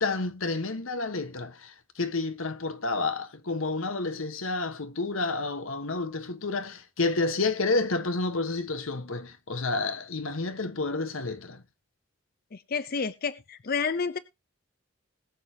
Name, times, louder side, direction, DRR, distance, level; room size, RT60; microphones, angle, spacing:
voice 1, 0.0-11.6, left 3 dB, 85° left, 1.3 m, -30 dB
voice 2, 12.5-14.2, left 5 dB, 45° left, 0.6 m, -30 dB
20.0 x 6.8 x 2.8 m
head